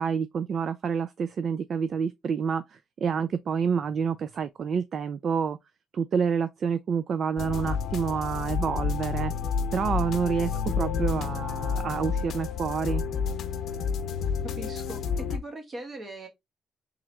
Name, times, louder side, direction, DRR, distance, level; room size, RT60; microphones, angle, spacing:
voice 1, 0.0-5.6 5.9-9.3 9.7-13.0, right 6 dB, 55° right, 0.3 m, -28 dB
sound 1, 7.4-15.4, left 6 dB, 70° left, 0.6 m, -30 dB
voice 2, 14.6-16.3, right 2 dB, 40° right, 1.5 m, -40 dB
3.5 x 3.2 x 3.3 m
cardioid pair, 90°, 0 cm